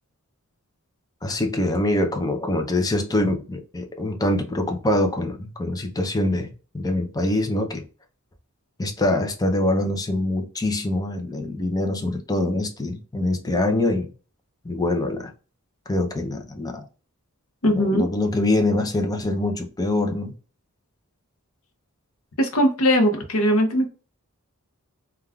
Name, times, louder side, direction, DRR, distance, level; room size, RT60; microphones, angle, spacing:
voice 1, 1.2-6.5 6.7-7.8 8.8-14.1 14.6-15.3 15.9-16.8 17.6-20.3, left 1 dB, 15° left, 0.5 m, -24 dB
voice 2, 17.6-18.1 22.4-23.9, equal, 75° left, 0.8 m, -19 dB
3.4 x 2.3 x 2.3 m
head